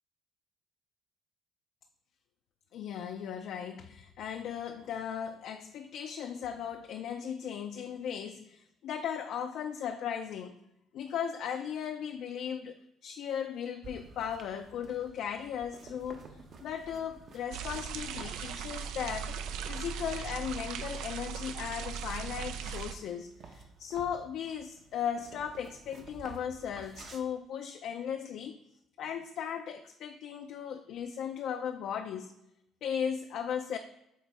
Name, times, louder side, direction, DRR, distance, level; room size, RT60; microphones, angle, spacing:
voice 1, 2.7-10.5 10.9-12.8 13.0-19.4 19.7-28.6 29.0-32.3 32.8-33.8, left 8 dB, 60° left, 5 dB, 0.4 m, -37 dB
sound 1, 13.8-27.2, right 4 dB, 45° right, 0.8 m, -53 dB
sound 2, 17.5-22.9, right 7 dB, 85° right, 0.5 m, -38 dB
8.2 x 3.0 x 4.7 m, 0.84 s
cardioid pair, 155°, 0 cm